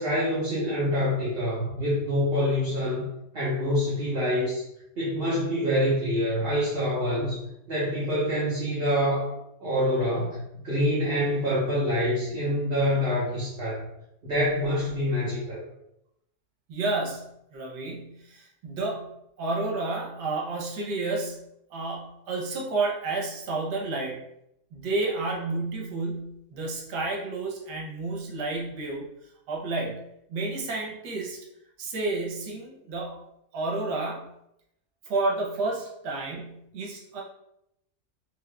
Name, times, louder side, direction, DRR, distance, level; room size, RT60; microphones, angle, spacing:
voice 1, 0.0-3.1 3.3-4.6 5.0-7.4 7.7-9.3 9.6-13.9 14.2-15.6, equal, 45° right, -8 dB, 1.1 m, -26 dB
voice 2, 16.7-24.2 24.7-29.1 29.5-31.4 31.8-33.2 33.5-34.3 35.1-37.2, right 3 dB, 90° right, -1 dB, 1.3 m, -31 dB
3.8 x 3.0 x 2.2 m, 0.80 s
omnidirectional pair, 1.7 m